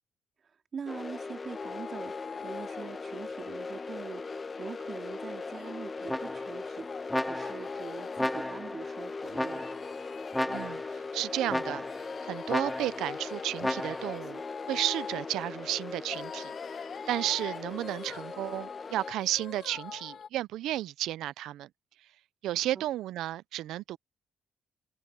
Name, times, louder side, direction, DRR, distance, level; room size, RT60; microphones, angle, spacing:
voice 1, 0.7-9.7 22.7-22.8, right 6 dB, 50° right, 2.7 m, -44 dB
sound 1, 0.9-19.1, left 4 dB, 30° left, 1.6 m, -40 dB
sound 2, 1.5-20.3, left 7 dB, 50° left, 1.3 m, -46 dB
sound 3, 6.1-6.6 7.1-7.7 8.2-8.8 9.3-9.9 10.3-11.0 11.5-12.1 12.5-13.1 13.6-14.2, left 1 dB, 5° left, 3.1 m, -33 dB
voice 2, 10.5-10.8 11.1-11.8 12.2-14.4 14.7-16.5 17.1-21.7 22.4-24.0, right 14 dB, 85° right, 0.5 m, -33 dB
cardioid pair, 90°, 0 cm